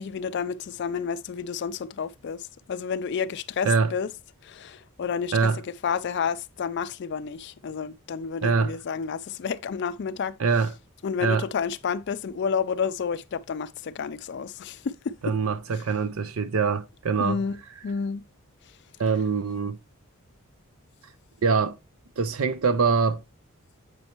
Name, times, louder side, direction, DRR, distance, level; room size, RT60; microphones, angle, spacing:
voice 1, 0.0-4.1 4.4-5.5 5.8-10.4 11.0-15.2 17.2-17.6 17.8-18.2, left 6 dB, 50° left, 0.4 m, -30 dB
voice 2, 5.3-5.6 8.4-8.8 10.4-10.7 11.2-11.4 15.2-17.4 19.0-19.8 21.4-21.8 22.2-23.2, right 5 dB, 70° right, 0.5 m, -24 dB
7.9 x 5.4 x 2.9 m
head